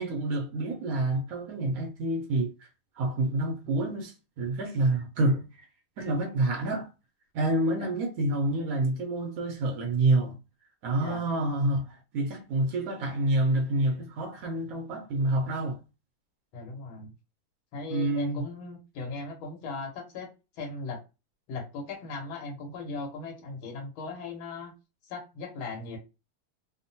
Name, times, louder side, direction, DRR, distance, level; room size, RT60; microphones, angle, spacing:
voice 1, 0.0-2.7 3.0-5.7 6.0-6.9 7.3-10.4 10.8-15.8 17.9-18.4, right 2 dB, 80° right, 0.7 m, -28 dB
voice 2, 16.5-17.1 17.7-21.0 21.5-24.7 25.0-26.0, left 3 dB, 85° left, 1.7 m, -38 dB
3.5 x 2.1 x 2.7 m
omnidirectional pair, 2.2 m